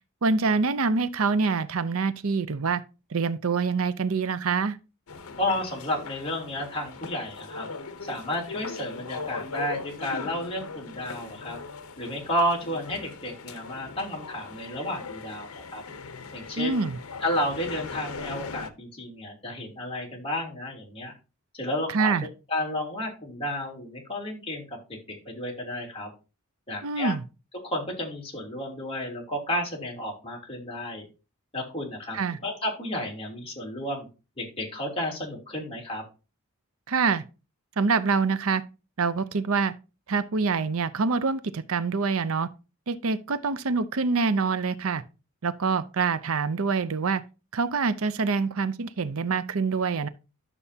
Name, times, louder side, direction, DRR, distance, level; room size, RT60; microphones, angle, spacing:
voice 1, 0.2-2.8 3.1-4.8 16.6-17.0 21.9-22.3 26.8-27.2 32.1-32.4 36.9-37.2 37.8-38.6 39.0-39.7 40.1-42.5 42.9-45.0 45.4-47.2 47.5-50.1, right 4 dB, 70° right, 0.6 m, -25 dB
sound 1, 5.1-18.7, left 4 dB, 75° left, 0.9 m, -39 dB
voice 2, 5.4-7.7 8.0-11.6 12.0-15.8 16.3-16.8 17.2-21.1 21.5-22.1 22.5-24.8 25.1-26.1 26.7-27.1 27.6-31.0 31.5-32.2 32.4-34.1 34.4-36.0, left 1 dB, 25° left, 3.1 m, -32 dB
11.5 x 6.9 x 2.8 m
head